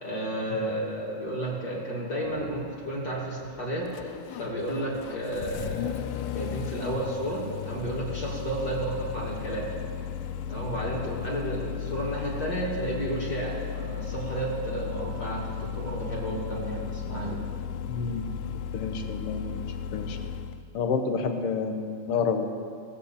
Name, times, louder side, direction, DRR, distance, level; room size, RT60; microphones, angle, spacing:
voice 1, 0.0-4.1 4.4-9.7 10.5-17.4, right 1 dB, 30° left, -3 dB, 2.4 m, -32 dB
Engine starting, 2.3-20.6, left 8 dB, 85° left, 2.1 m, -35 dB
voice 2, 17.9-18.3 18.7-19.7 19.9-20.2 20.7-22.4, left 5 dB, 65° left, 6 dB, 1.5 m, -29 dB
17.0 x 8.0 x 7.0 m, 2.3 s
omnidirectional pair, 3.6 m